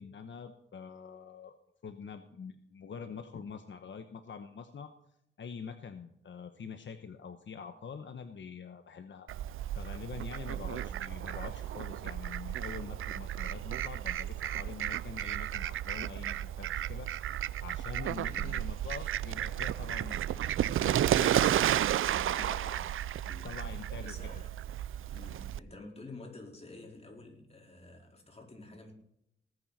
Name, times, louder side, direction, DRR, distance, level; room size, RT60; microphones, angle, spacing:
voice 1, 0.0-1.5 1.8-4.9 5.4-9.3 9.7-20.4 20.8-22.6 23.4-24.3, left 6 dB, 65° left, 8 dB, 1.1 m, -45 dB
Fowl, 9.3-25.6, right 11 dB, 90° right, 0.4 m, -33 dB
voice 2, 10.7-11.0 18.2-18.6 22.3-22.9 23.2-23.7 24.0-24.5 25.1-28.9, left 2 dB, 30° left, 0 dB, 4.3 m, -50 dB
19.0 x 9.3 x 4.3 m, 0.77 s
cardioid pair, 75°, 20 cm